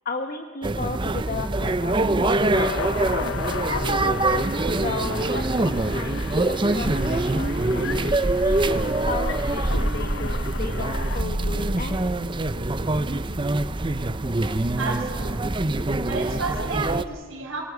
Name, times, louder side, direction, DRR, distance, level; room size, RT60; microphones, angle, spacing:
voice 1, 0.0-3.1 3.6-12.0, left 3 dB, 45° left, 4 dB, 1.3 m, -34 dB
sound 1, 0.6-17.0, right 2 dB, 25° right, 0.7 m, -24 dB
sound 2, 2.5-11.2, left 6 dB, 65° left, 0.6 m, -35 dB
Keyboard (musical), 11.2-14.4, left 1 dB, 70° right, 2.2 m, -41 dB
voice 2, 14.8-15.6 16.1-17.6, right 3 dB, 90° right, -4 dB, 3.7 m, -32 dB
24.0 x 19.0 x 8.2 m, 1.5 s
head